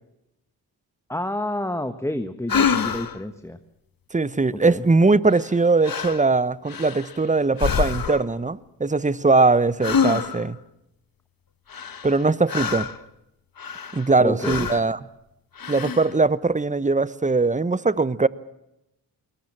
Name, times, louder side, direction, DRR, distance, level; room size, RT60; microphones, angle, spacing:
voice 1, 1.1-3.6 4.6-4.9 14.2-14.7, left 1 dB, 5° left, 1.2 m, -29 dB
sound 1, 2.5-3.2 5.3-5.6 5.8-6.3 6.7-7.2 7.6-8.3 9.8-10.5 11.7-13.0 13.6-14.1 14.4-14.9 15.5-16.1, left 6 dB, 45° left, 1.4 m, -26 dB
voice 2, 4.1-10.6 12.0-12.9 13.9-15.0 15.7-18.3, right 3 dB, 15° right, 0.9 m, -20 dB
22.0 x 19.5 x 7.5 m
supercardioid pair, 40°, 47 cm